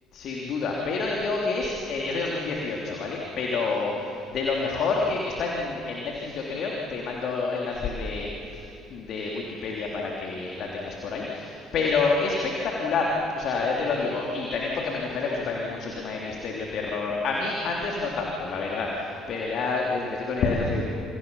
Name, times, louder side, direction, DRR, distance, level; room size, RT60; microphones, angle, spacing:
voice 1, 0.1-8.6 8.9-20.8, left 4 dB, 50° left, -1 dB, 3.4 m, -28 dB
29.5 x 28.0 x 5.7 m, 2.6 s
figure-of-eight pair, 50°, 0 cm